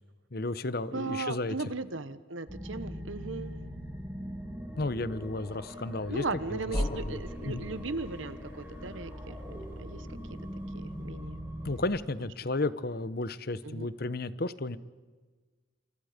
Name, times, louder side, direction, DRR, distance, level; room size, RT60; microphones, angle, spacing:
voice 1, 0.3-1.5 4.8-6.2 7.0-7.2 7.5-7.6 11.6-14.8, left 2 dB, 50° left, 15 dB, 1.0 m, -33 dB
voice 2, 0.9-3.6 4.9-5.1 6.1-10.2 10.7-11.4 13.6-13.9, right 3 dB, 80° right, 13 dB, 1.3 m, -37 dB
sound 1, 2.5-11.9, equal, 10° right, 4.6 m, -42 dB
sound 2, 6.7-11.4, left 1 dB, 25° left, 2.2 m, -40 dB
29.0 x 27.5 x 5.2 m, 1.4 s
head